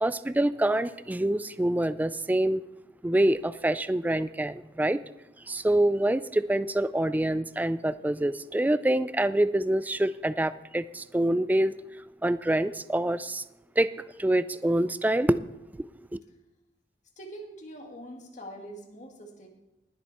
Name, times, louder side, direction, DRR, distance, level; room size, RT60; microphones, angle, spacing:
voice 1, 0.0-2.6 3.0-5.0 5.5-11.7 12.2-13.4 13.8-15.4 15.8-16.2, right 1 dB, 10° right, 0.3 m, -26 dB
voice 2, 17.2-19.5, right 1 dB, 45° left, 2.1 m, -43 dB
20.0 x 7.6 x 4.2 m
head